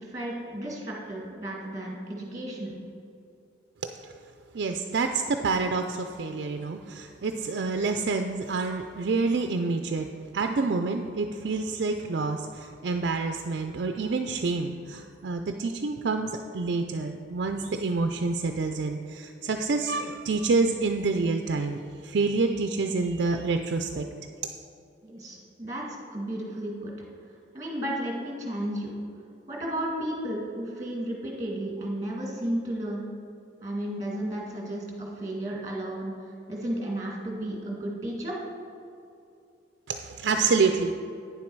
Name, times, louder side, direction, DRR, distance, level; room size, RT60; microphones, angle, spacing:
voice 1, 0.0-2.7 25.0-25.8 26.1-26.9 27.5-28.9 29.5-33.0 33.6-36.1 36.5-38.4, right 1 dB, 20° right, -2 dB, 1.9 m, -33 dB
voice 2, 4.5-10.1 10.3-24.1 39.9-40.9, right 4 dB, 60° right, 5 dB, 0.4 m, -27 dB
9.5 x 7.3 x 4.6 m, 2.6 s
head